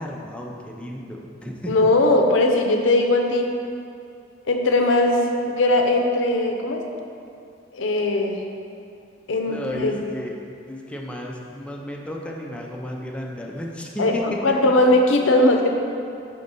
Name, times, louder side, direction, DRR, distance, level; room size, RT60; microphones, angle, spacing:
voice 1, 0.0-1.7 9.5-10.4 10.7-14.2, equal, 5° left, -1 dB, 0.5 m, -33 dB
voice 2, 1.7-3.5 4.5-6.8 7.7-8.4 9.3-10.0 14.0-15.7, left 2 dB, 75° left, 3 dB, 0.6 m, -19 dB
5.2 x 4.1 x 5.3 m, 2.5 s
head